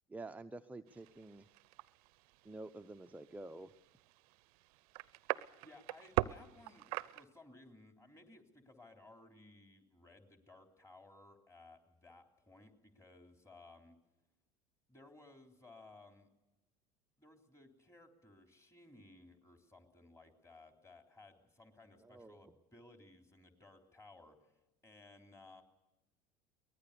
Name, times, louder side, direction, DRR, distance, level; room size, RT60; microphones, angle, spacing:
voice 1, 0.1-1.5 2.4-3.7 22.0-22.5, right 2 dB, 10° right, 8 dB, 0.7 m, -49 dB
sound 1, 0.9-7.2, right 20 dB, 65° right, 0.7 m, -42 dB
voice 2, 5.3-6.9 7.1-14.0 14.9-16.3 17.2-25.6, left 2 dB, 15° left, 4 dB, 3.7 m, -60 dB
23.0 x 19.5 x 6.9 m, 1.0 s
hypercardioid pair, 75°, 20 cm